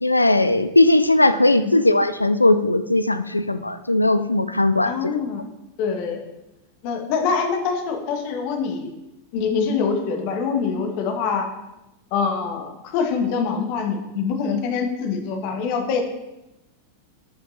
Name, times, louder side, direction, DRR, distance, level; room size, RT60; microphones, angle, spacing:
voice 1, 0.0-5.0, left 2 dB, 85° left, 12 dB, 0.3 m, -18 dB
voice 2, 4.8-5.4 5.8-6.2 6.8-8.9 9.3-11.5 12.1-16.0, left 5 dB, 45° left, 4 dB, 1.3 m, -24 dB
10.0 x 5.9 x 2.7 m, 0.95 s
figure-of-eight pair, 90°, 0 cm